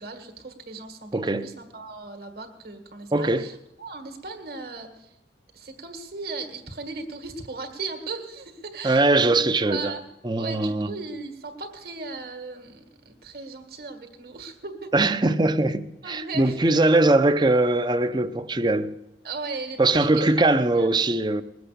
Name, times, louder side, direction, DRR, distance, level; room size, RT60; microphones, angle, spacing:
voice 1, 0.0-5.1 5.5-9.3 9.6-10.0 10.4-14.9 16.0-16.6 19.2-20.3 20.7-20.9, right 4 dB, 60° right, 2.0 m, -37 dB
voice 2, 1.1-1.5 3.1-3.5 8.8-9.9 10.2-11.0 14.9-19.0 19.8-21.4, right 2 dB, 25° right, 0.6 m, -21 dB
20.5 x 8.0 x 6.8 m
head